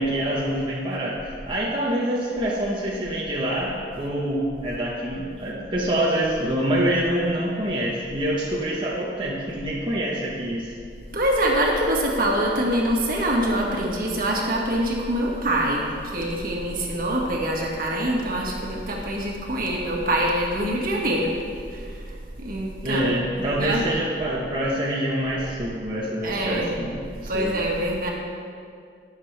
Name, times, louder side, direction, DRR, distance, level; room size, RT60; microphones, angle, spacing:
voice 1, 0.0-10.7 22.8-27.5, right 1 dB, 30° right, -5 dB, 1.1 m, -26 dB
voice 2, 11.1-21.3 21.7-21.8 22.4-23.0 23.6-23.8 26.2-26.7 27.3-28.1, right 1 dB, 50° right, -2 dB, 1.8 m, -24 dB
19.0 x 7.4 x 3.4 m, 2.3 s
head